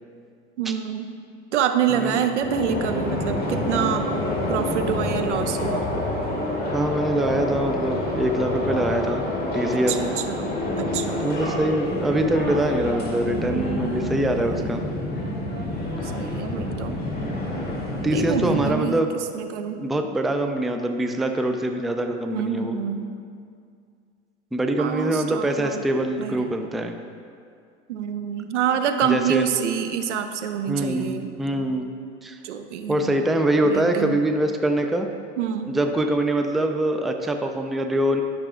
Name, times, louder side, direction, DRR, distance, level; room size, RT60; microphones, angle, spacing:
voice 1, 0.6-1.1 1.5-4.1 4.5-5.9 9.9-11.4 13.3-14.2 16.0-17.0 18.1-19.9 22.3-23.1 24.8-26.5 27.9-31.7 32.4-33.2 33.6-34.3 35.4-35.8, right 8 dB, 90° right, 8 dB, 0.6 m, -27 dB
voice 2, 1.9-2.3 6.7-9.2 9.5-10.2 11.2-14.8 17.2-17.5 18.0-19.1 19.7-22.7 24.5-26.9 29.0-29.4 30.7-31.9 32.2-32.4 32.9-35.1 35.7-38.2, right 1 dB, ahead, 5 dB, 0.3 m, -24 dB
sound 1, 2.4-18.7, left 1 dB, 25° left, 1.9 m, -28 dB
11.5 x 6.0 x 2.5 m, 2.2 s
hypercardioid pair, 95°, 34 cm